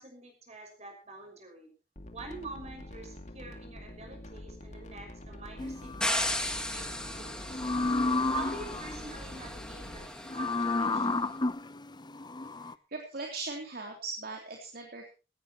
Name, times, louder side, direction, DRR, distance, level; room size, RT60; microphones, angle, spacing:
voice 1, 0.0-1.7 2.1-6.3 6.7-7.8 8.3-10.0 10.3-11.3, right 3 dB, 35° right, 3 dB, 6.0 m, -46 dB
sound 1, 2.0-10.1, left 1 dB, 40° left, 2.3 m, -46 dB
sound 2, 5.6-6.4 7.5-9.0 10.2-12.7, left 3 dB, 25° left, 0.8 m, -31 dB
sound 3, 6.0-11.1, left 1 dB, 5° left, 2.4 m, -36 dB
voice 2, 12.6-15.1, right 3 dB, 55° right, 1 dB, 3.1 m, -40 dB
18.0 x 17.0 x 3.0 m, 0.32 s
head